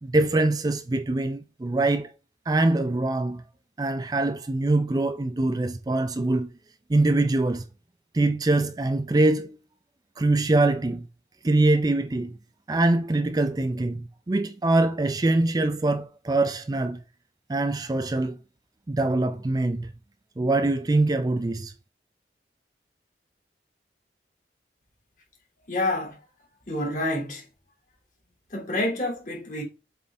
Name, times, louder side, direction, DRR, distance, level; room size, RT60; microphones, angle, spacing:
voice 1, 0.0-2.1 2.5-3.4 3.8-6.5 6.9-7.7 8.1-9.6 10.2-11.1 11.4-12.4 12.7-17.0 17.5-18.4 18.9-19.9 20.4-21.7, right 2 dB, 20° right, 0.4 m, -23 dB
voice 2, 25.7-26.2 26.7-27.4 28.5-29.6, left 1 dB, 45° left, 3.1 m, -28 dB
7.8 x 3.7 x 3.7 m
head